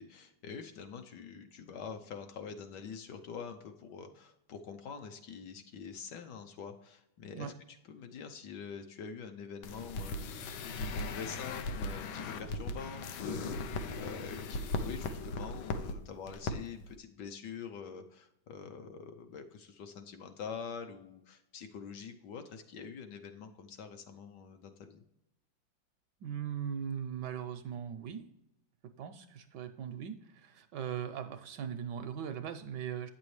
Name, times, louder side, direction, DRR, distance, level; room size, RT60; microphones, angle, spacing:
voice 1, 0.0-7.5 7.9-25.0, left 6 dB, 70° left, 6 dB, 1.2 m, -45 dB
sound 1, 9.6-15.9 16.3-16.5 16.8-16.9, left 3 dB, 90° left, 1.5 m, -38 dB
voice 2, 26.2-28.3 28.8-33.1, right 8 dB, 75° right, 9 dB, 1.1 m, -39 dB
8.7 x 6.9 x 3.2 m, 0.86 s
omnidirectional pair, 2.2 m